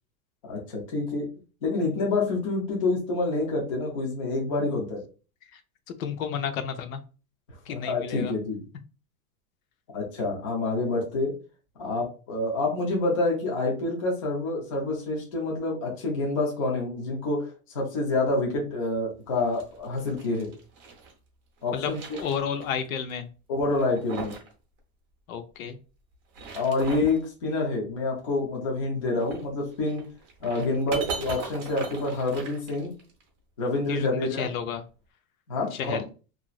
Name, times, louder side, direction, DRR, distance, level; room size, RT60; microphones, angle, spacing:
voice 1, 0.4-1.3 1.6-5.0 7.7-8.6 9.9-11.3 11.8-20.5 21.6-22.2 23.5-24.3 26.5-30.0 30.4-32.9 33.6-34.5 35.5-36.0, left 2 dB, 25° left, -2 dB, 0.3 m, -27 dB
voice 2, 6.0-7.0 7.7-8.3 21.7-23.3 25.3-25.8 33.9-34.8 35.7-36.1, left 7 dB, 70° left, 8 dB, 0.6 m, -31 dB
sound 1, 19.3-21.1 21.6-22.8 23.1-23.2 23.7-24.5 24.8-24.9 26.1-27.2 29.1-33.2, right 5 dB, 30° right, 0.6 m, -39 dB
2.8 x 2.5 x 2.3 m, 0.35 s
supercardioid pair, 180°, 42 cm